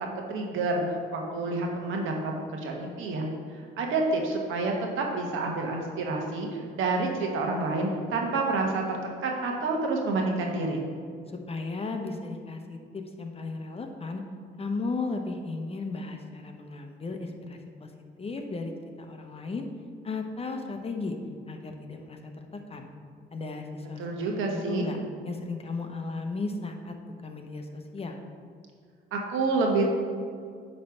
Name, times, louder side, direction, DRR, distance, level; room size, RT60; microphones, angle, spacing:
voice 1, 0.3-0.8 1.1-3.3 3.8-6.5 6.7-10.8 24.0-24.9 29.1-29.9, right 3 dB, 90° right, 1 dB, 1.2 m, -28 dB
voice 2, 11.5-14.2 14.6-17.9 18.2-18.7 19.0-19.7 20.0-21.2 21.5-22.9 23.3-25.0 25.2-26.9 27.2-28.2, left 3 dB, 30° left, 4 dB, 0.9 m, -35 dB
9.4 x 3.3 x 5.9 m, 2.1 s
cardioid pair, 90°, 20 cm